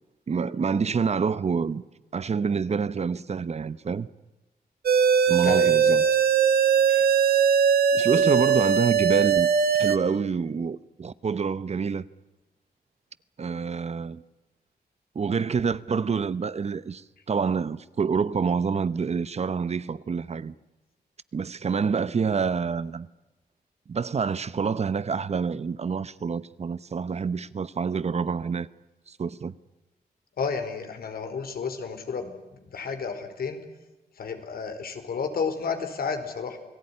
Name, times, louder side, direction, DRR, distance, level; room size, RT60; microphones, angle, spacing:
voice 1, 0.3-1.8 2.1-4.1 5.3-6.0 6.9-7.1 7.9-9.5 9.8-12.0 13.4-14.2 15.1-20.5 21.3-23.1 23.9-28.7 29.1-29.5, right 5 dB, 40° right, 0.9 m, -27 dB
sound 1, 4.9-10.0, right 7 dB, 75° right, 1.8 m, -20 dB
voice 2, 5.3-6.0 30.4-33.6 34.2-36.6, left 5 dB, 70° left, 4.5 m, -32 dB
28.5 x 19.5 x 9.9 m
wide cardioid pair, 115°, 16 cm